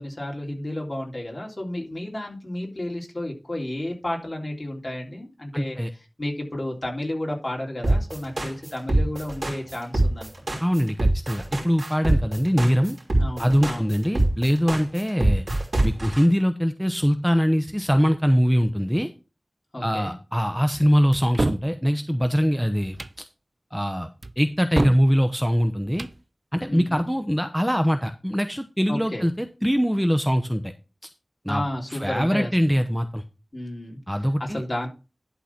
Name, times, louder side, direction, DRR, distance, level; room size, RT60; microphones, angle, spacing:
voice 1, 0.0-5.8 6.2-10.6 13.2-13.9 19.7-20.1 26.7-27.1 28.9-29.2 31.5-32.5 33.5-34.0 34.4-34.9, left 1 dB, 40° left, -1 dB, 3.4 m, -32 dB
voice 2, 5.5-5.9 10.6-13.0 13.4-15.5 15.8-19.1 19.8-23.2 23.7-24.1 24.4-26.1 26.5-30.7 31.4-31.6 31.9-33.2 34.1-34.6, equal, ahead, 7 dB, 0.8 m, -22 dB
sound 1, 7.8-16.2, right 1 dB, 60° right, 2.8 m, -23 dB
sound 2, 21.1-21.7 22.8-23.2 24.2-25.1 25.8-26.2, right 2 dB, 45° right, 0.4 m, -27 dB
11.5 x 3.9 x 5.9 m, 0.30 s
wide cardioid pair, 55°, 0 cm